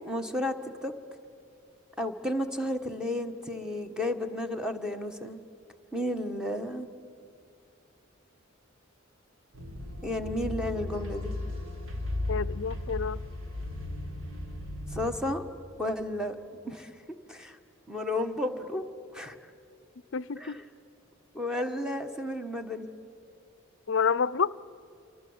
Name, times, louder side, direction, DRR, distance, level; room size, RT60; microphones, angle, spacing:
voice 1, 0.1-0.5 0.8-0.9 2.0-5.4 5.9-6.9 10.0-11.3 14.9-15.4 15.8-16.4 16.6-17.6 17.9-18.8 19.1-19.4 20.3-20.6 21.3-22.9, left 1 dB, 5° right, 1.4 m, -32 dB
sound 1, 9.5-15.1, left 1 dB, 80° right, 3.4 m, -36 dB
voice 2, 12.3-13.2 20.1-20.6 23.9-24.5, left 6 dB, 65° left, 0.5 m, -28 dB
28.5 x 24.5 x 8.1 m
head